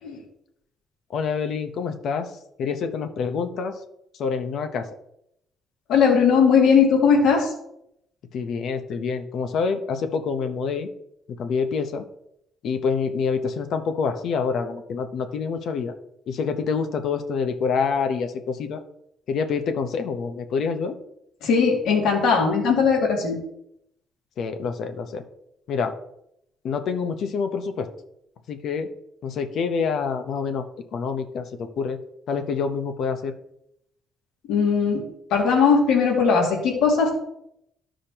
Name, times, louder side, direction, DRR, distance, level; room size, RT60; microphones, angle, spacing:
voice 1, 1.1-3.8 4.1-4.9 8.3-10.9 11.3-12.0 12.6-15.9 16.3-18.8 19.3-21.0 24.4-25.2 25.7-26.0 26.6-27.9 28.5-28.9 29.2-30.7 30.9-32.0 32.3-33.3, left 5 dB, 55° left, 7 dB, 0.9 m, -27 dB
voice 2, 5.9-7.5 21.4-23.4 34.5-35.0 35.3-37.1, left 5 dB, 90° left, -2 dB, 2.3 m, -19 dB
14.5 x 5.0 x 2.9 m, 0.77 s
cardioid pair, 160°, 0 cm